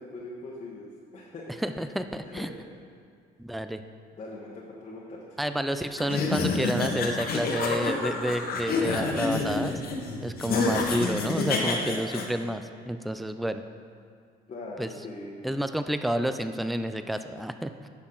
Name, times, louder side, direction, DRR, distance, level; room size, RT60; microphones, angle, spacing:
voice 1, 0.0-1.5 2.2-2.7 4.2-5.4 14.5-15.5, left 2 dB, 40° left, -4 dB, 1.2 m, -41 dB
voice 2, 1.6-2.5 3.4-3.8 5.4-9.8 10.2-13.6 14.8-14.9 15.4-17.9, right 1 dB, ahead, 9 dB, 0.3 m, -30 dB
sound 1, 6.0-12.2, left 3 dB, 60° left, 1.2 m, -28 dB
9.7 x 6.3 x 3.9 m, 2.2 s
cardioid pair, 110°, 17 cm